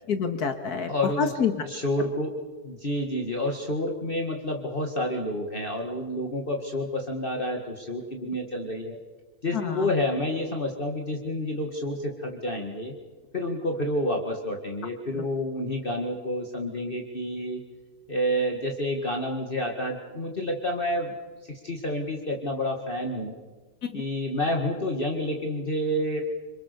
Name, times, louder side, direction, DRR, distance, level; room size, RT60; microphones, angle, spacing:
voice 1, 0.1-1.6 9.5-9.9 23.8-24.0, left 6 dB, 85° left, 7 dB, 2.1 m, -27 dB
voice 2, 0.9-1.3 1.6-2.3 2.6-9.0 9.4-12.9 13.3-17.6 18.1-21.1 21.4-23.4 23.9-26.2, left 1 dB, 35° left, 1 dB, 2.3 m, -29 dB
27.5 x 25.5 x 6.9 m, 1.3 s
omnidirectional pair, 1.6 m